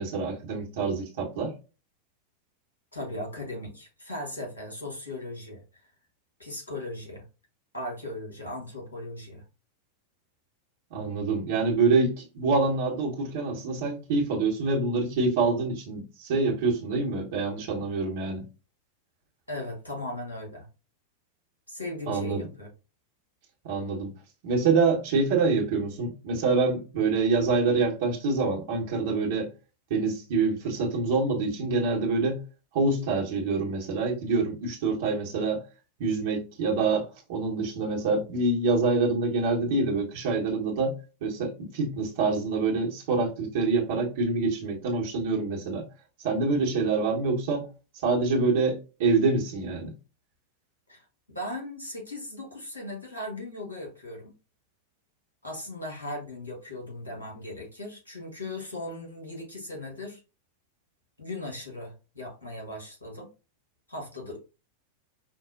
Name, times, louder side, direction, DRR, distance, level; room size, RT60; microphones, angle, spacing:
voice 1, 0.0-1.5 10.9-18.4 22.1-22.5 23.6-24.1 24.4-29.5 29.9-32.4 32.7-35.6 36.0-40.9 41.2-45.8 46.2-47.7 48.0-49.9, right 3 dB, 50° right, 1.0 m, -26 dB
voice 2, 2.9-5.9 6.4-7.3 7.7-9.4 19.5-20.7 21.7-22.7 50.9-54.3 55.4-60.2 61.2-63.3 63.9-64.4, left 1 dB, 80° left, 1.5 m, -38 dB
5.2 x 2.1 x 2.5 m
figure-of-eight pair, 90°, 0 cm